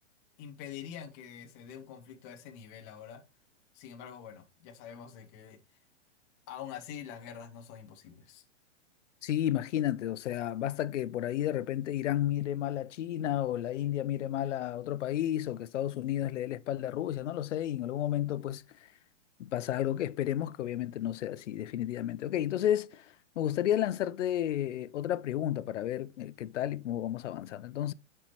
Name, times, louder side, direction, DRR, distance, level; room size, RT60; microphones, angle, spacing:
voice 1, 0.4-3.2 3.7-5.6 6.5-8.4, left 8 dB, 15° left, 0.3 m, -45 dB
voice 2, 9.2-18.6 19.4-27.9, left 12 dB, 80° left, 0.5 m, -32 dB
9.0 x 4.4 x 2.9 m
hypercardioid pair, 145°, 36 cm